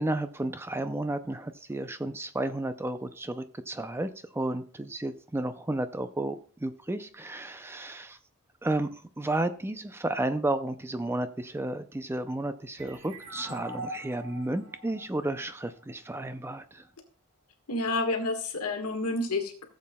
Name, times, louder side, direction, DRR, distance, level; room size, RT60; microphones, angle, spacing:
voice 1, 0.0-8.2 8.6-8.9 9.2-16.8, right 1 dB, 10° right, 10 dB, 0.4 m, -32 dB
sound 1, 12.8-16.2, right 1 dB, 70° right, 4.2 m, -43 dB
voice 2, 17.7-19.7, left 2 dB, 80° left, 5 dB, 1.6 m, -29 dB
16.0 x 7.4 x 2.3 m, 0.43 s
head